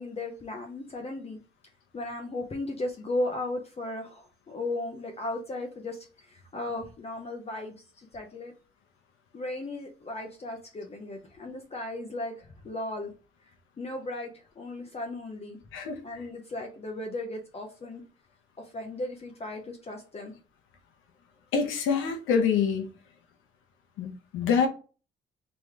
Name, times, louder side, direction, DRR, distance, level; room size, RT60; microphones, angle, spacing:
voice 1, 0.0-1.4 1.9-8.5 9.3-13.1 13.8-15.6 16.0-18.0 18.6-20.3, left 2 dB, 30° left, 0.7 m, -36 dB
voice 2, 15.7-16.2 21.5-22.9 24.0-24.7, left 6 dB, 85° left, 0.8 m, -26 dB
3.2 x 3.0 x 3.5 m
cardioid pair, 90°, 20 cm